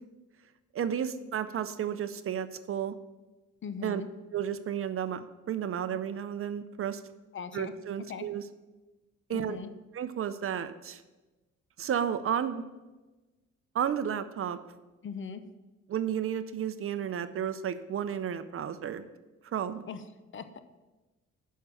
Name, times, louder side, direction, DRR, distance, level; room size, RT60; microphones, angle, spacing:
voice 1, 0.7-2.9 3.8-4.0 4.3-7.0 7.5-8.4 9.3-9.6 9.9-11.0 11.8-12.7 13.7-14.6 15.9-19.1 19.5-19.8, right 9 dB, 45° right, 12 dB, 0.6 m, -32 dB
voice 2, 3.6-4.1 7.3-7.7 8.1-8.3 9.3-9.7 15.0-15.4 19.9-20.1 20.3-20.6, left 6 dB, 40° left, 11 dB, 0.7 m, -39 dB
6.6 x 5.5 x 7.1 m, 1.2 s
cardioid pair, 90°, 30 cm